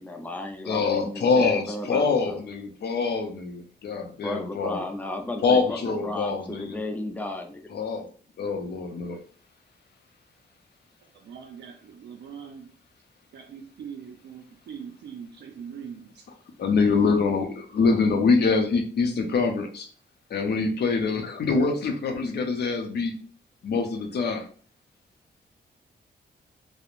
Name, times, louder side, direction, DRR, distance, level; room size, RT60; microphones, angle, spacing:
voice 1, 0.0-2.4 4.2-7.6, left 2 dB, 10° left, 4 dB, 0.4 m, -34 dB
voice 2, 0.7-4.8 5.4-6.8 7.7-8.1 8.4-9.2 16.6-19.9 20.3-23.1 23.6-24.5, left 4 dB, 65° left, 4 dB, 0.5 m, -24 dB
voice 3, 11.2-12.7 13.3-16.1, right 7 dB, 70° right, 1 dB, 0.4 m, -41 dB
2.4 x 2.0 x 3.0 m, 0.43 s
wide cardioid pair, 115°, 18 cm